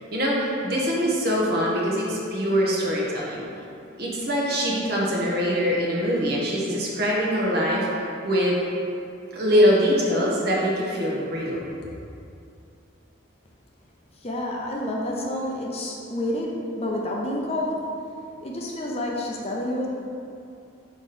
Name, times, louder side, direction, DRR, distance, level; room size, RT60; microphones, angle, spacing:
voice 1, 0.1-3.4 4.0-7.9 8.2-8.5 9.3-11.6, equal, 50° right, -4 dB, 1.1 m, -23 dB
voice 2, 14.2-17.9 18.4-19.9, left 1 dB, 30° left, -2 dB, 0.6 m, -29 dB
5.3 x 4.7 x 4.2 m, 2.6 s
head